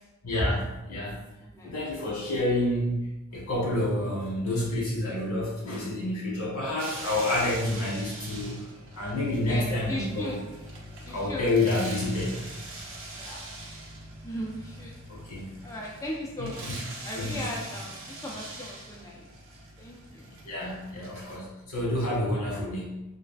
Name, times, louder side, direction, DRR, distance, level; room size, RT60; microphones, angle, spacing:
voice 1, 0.2-1.2 1.6-3.0 3.3-8.7 8.9-10.4 11.1-12.4 15.1-15.6 16.4-16.5 17.1-17.6 20.4-23.0, left 1 dB, 80° left, -5 dB, 1.2 m, -29 dB
voice 2, 1.4-1.7 9.5-10.4 11.0-11.5 13.2-13.4 14.2-14.9 15.6-16.8 17.0-19.3 19.8-20.3, left 1 dB, 15° left, -3 dB, 0.3 m, -37 dB
sound 1, 6.8-21.4, right 2 dB, 60° right, 0.7 m, -43 dB
3.3 x 2.3 x 2.4 m, 0.96 s
head